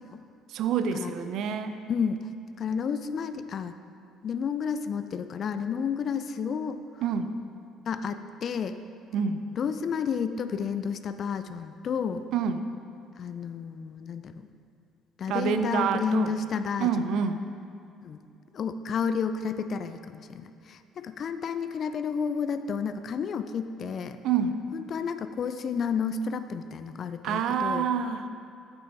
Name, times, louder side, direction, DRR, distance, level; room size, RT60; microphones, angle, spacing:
voice 1, 0.5-1.8 7.0-7.3 9.1-9.4 12.3-12.7 15.3-16.3 16.8-17.4 24.2-24.6 27.2-28.3, right 6 dB, 65° right, 9 dB, 0.4 m, -27 dB
voice 2, 1.9-2.2 2.6-3.7 4.2-6.8 7.9-8.8 9.5-12.2 13.2-14.5 15.2-17.2 18.0-18.2 18.5-24.2 24.7-27.9, left 6 dB, 50° left, 10 dB, 0.3 m, -31 dB
8.2 x 6.3 x 3.4 m, 2.6 s
hypercardioid pair, 55°, 0 cm